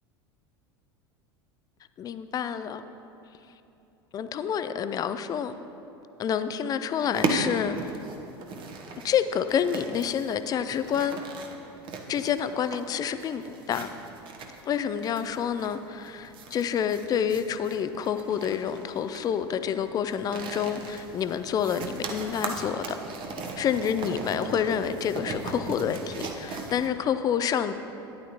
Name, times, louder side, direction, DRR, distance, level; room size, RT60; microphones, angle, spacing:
voice 1, 2.0-2.8 4.1-5.5 6.2-8.0 9.0-11.2 12.1-13.9 14.7-22.9 23.6-27.7, left 8 dB, 30° left, 11 dB, 0.5 m, -28 dB
sound 1, 7.0-26.9, right 3 dB, 40° right, 1.0 m, -37 dB
12.5 x 10.5 x 2.9 m, 2.9 s
figure-of-eight pair, 80°, 14 cm